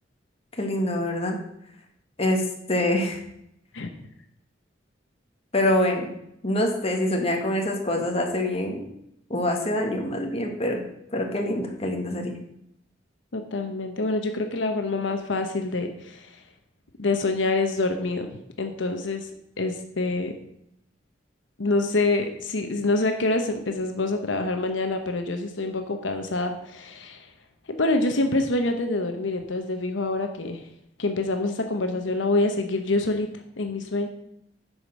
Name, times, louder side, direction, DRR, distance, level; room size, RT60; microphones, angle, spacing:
voice 1, 0.6-1.4 2.2-2.4 2.7-3.2 5.5-6.1 6.4-8.8 9.3-10.8 11.1-12.4, left 1 dB, 35° left, 2 dB, 1.6 m, -25 dB
voice 2, 13.3-16.4 17.0-19.3 19.6-20.3 21.6-27.3 27.7-30.6 31.0-33.3 33.6-34.1, left 2 dB, 85° left, 5 dB, 0.9 m, -26 dB
9.3 x 5.1 x 6.2 m, 0.77 s
head